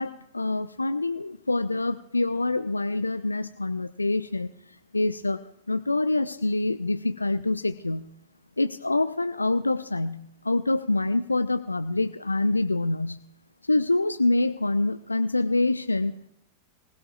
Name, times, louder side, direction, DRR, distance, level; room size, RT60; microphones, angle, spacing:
voice 1, 0.0-4.5 4.9-5.4 5.7-8.1 8.6-13.2 13.6-16.2, left 2 dB, 80° left, 11 dB, 0.4 m, -26 dB
24.5 x 17.0 x 2.4 m, 0.81 s
figure-of-eight pair, 90°, 0 cm